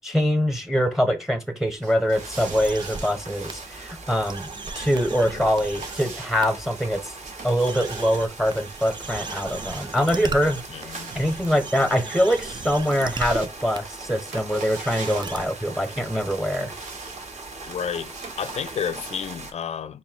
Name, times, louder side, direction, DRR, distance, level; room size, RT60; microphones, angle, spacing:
voice 1, 0.0-4.5 4.7-7.1 7.4-10.6 10.9-16.7, equal, ahead, 0.9 m, -24 dB
sound 1, 1.7-19.2, right 4 dB, 80° right, 1.0 m, -44 dB
sound 2, 2.1-19.5, right 3 dB, 60° right, 1.6 m, -40 dB
sound 3, 2.3-3.1 3.5-3.6 4.1-6.0 6.4-6.5 7.1-7.2 7.6-13.5 13.7-13.8 14.4-14.5 14.7-15.5, right 4 dB, 35° right, 0.6 m, -36 dB
voice 2, 10.7-11.1 17.7-20.0, left 7 dB, 55° left, 0.4 m, -31 dB
4.1 x 2.3 x 3.6 m
supercardioid pair, 45°, 13 cm